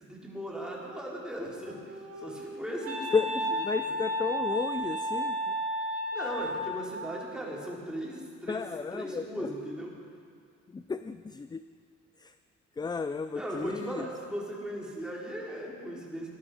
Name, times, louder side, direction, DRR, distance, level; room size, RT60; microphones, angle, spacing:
voice 1, 0.0-3.1 3.5-3.6 3.9-4.0 6.1-8.6 8.9-9.9 13.3-16.3, equal, 5° right, -4 dB, 3.9 m, -38 dB
Wind instrument woodwind instrument, 1.6-6.9, equal, 50° right, 2.4 m, -33 dB
voice 2, 3.6-5.4 8.5-9.5 10.7-11.6 12.2-12.3 12.8-14.1, left 4 dB, 15° left, 11 dB, 0.3 m, -32 dB
18.5 x 12.0 x 4.9 m, 2.2 s
cardioid pair, 90°, 30 cm